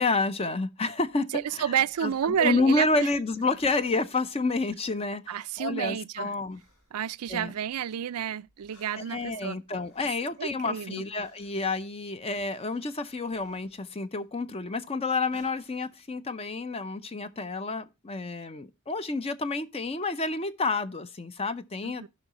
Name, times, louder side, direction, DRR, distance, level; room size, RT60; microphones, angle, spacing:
voice 1, 0.0-1.3 1.6-1.7 2.0-6.6 7.3-7.5 9.0-22.1, left 3 dB, 25° left, 0.6 m, -29 dB
Suffering From Pain, 1.1-4.4 4.6-7.9 8.3-16.0, left 2 dB, 70° left, 5.6 m, -61 dB
voice 2, 1.3-3.1 5.3-6.3 6.9-9.6 10.4-11.0 21.8-22.1, right 9 dB, 90° right, 0.4 m, -30 dB
15.5 x 5.5 x 2.9 m
head